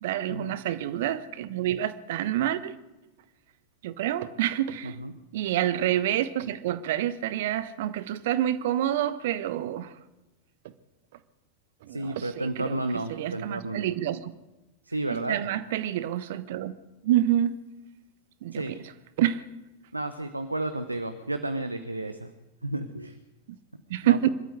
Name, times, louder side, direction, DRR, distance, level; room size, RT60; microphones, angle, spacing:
voice 1, 0.0-2.7 3.8-5.0 5.3-9.9 11.8-14.3 15.1-16.7 17.0-17.6 18.4-18.9 19.2-19.4 23.5-23.6 23.9-24.3, right 12 dB, 55° right, 1.2 m, -28 dB
voice 2, 4.8-5.1 11.9-13.9 14.9-15.4 18.5-18.7 19.9-22.3 22.6-23.2 24.0-24.2, right 2 dB, 85° right, 1.1 m, -32 dB
25.5 x 12.5 x 8.1 m
figure-of-eight pair, 90°, 0 cm